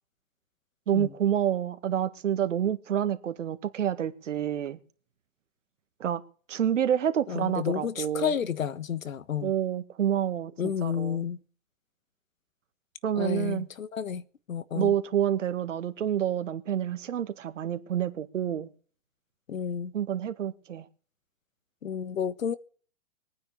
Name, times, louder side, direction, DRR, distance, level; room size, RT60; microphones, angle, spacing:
voice 1, 0.9-4.8 6.0-6.2 6.5-8.3 9.4-11.2 13.0-13.7 14.7-18.7 19.9-20.8, right 10 dB, 70° right, 1.9 m, -28 dB
voice 2, 7.3-9.5 10.6-11.4 13.1-14.2 14.5-14.9 19.5-19.9 21.8-22.6, left 8 dB, 90° left, 1.4 m, -31 dB
21.5 x 9.6 x 7.1 m
hypercardioid pair, 150°, 39 cm